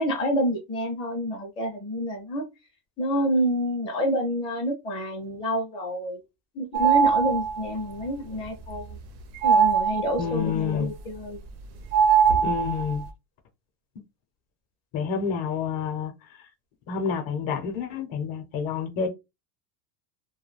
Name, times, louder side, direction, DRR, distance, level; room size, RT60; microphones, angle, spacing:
voice 1, 0.0-2.4 3.0-6.2 6.6-9.0 9.4-11.4, equal, 10° left, 0.5 m, -28 dB
sound 1, 6.7-7.7 9.4-10.4 11.9-13.0, right 7 dB, 60° right, 0.6 m, -21 dB
voice 2, 10.2-10.9 12.4-13.1 14.9-16.1 16.9-19.1, left 6 dB, 50° left, 0.7 m, -28 dB
2.3 x 2.2 x 3.2 m
cardioid pair, 155°, 44 cm